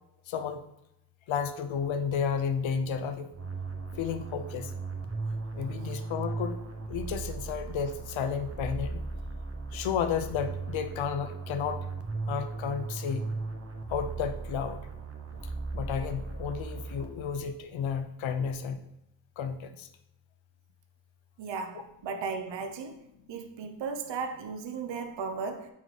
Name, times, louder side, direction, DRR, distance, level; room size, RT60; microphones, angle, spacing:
voice 1, 0.3-0.6 1.3-3.3 4.0-4.7 5.5-6.6 6.9-9.0 9.7-11.9 12.3-13.2 13.9-14.8 15.7-18.8 19.4-19.9, left 7 dB, 80° left, 0.7 m, -32 dB
sound 1, 3.3-17.4, right 3 dB, 30° right, 1.0 m, -37 dB
voice 2, 21.4-23.0 23.3-25.7, right 5 dB, 65° right, 0.8 m, -36 dB
9.3 x 4.0 x 3.3 m
cardioid pair, 60°, 46 cm